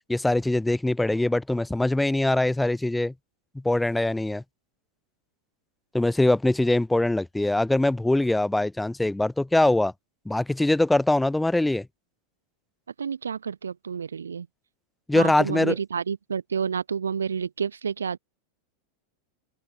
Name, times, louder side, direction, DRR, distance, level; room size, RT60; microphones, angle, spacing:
voice 1, 0.1-3.1 3.6-4.4 5.9-9.9 10.3-11.9 15.1-15.7, left 1 dB, 5° left, 0.6 m, -22 dB
voice 2, 13.0-14.5 15.1-18.2, right 6 dB, 70° right, 0.5 m, -29 dB
open air
figure-of-eight pair, 90°, 0 cm